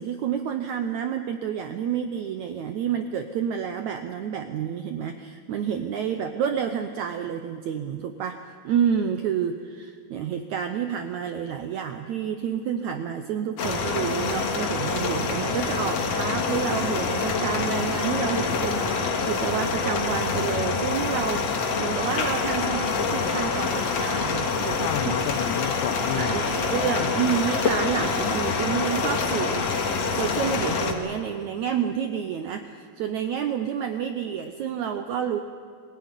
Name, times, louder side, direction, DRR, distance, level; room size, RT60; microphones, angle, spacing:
voice 1, 0.0-25.2 26.2-35.4, right 8 dB, 80° right, 7 dB, 1.6 m, -29 dB
sound 1, 13.6-30.9, left 4 dB, 50° left, 2.4 m, -26 dB
voice 2, 24.8-26.5 26.8-27.4, left 12 dB, 80° left, 9 dB, 1.8 m, -31 dB
22.5 x 16.0 x 9.8 m, 2.2 s
omnidirectional pair, 4.3 m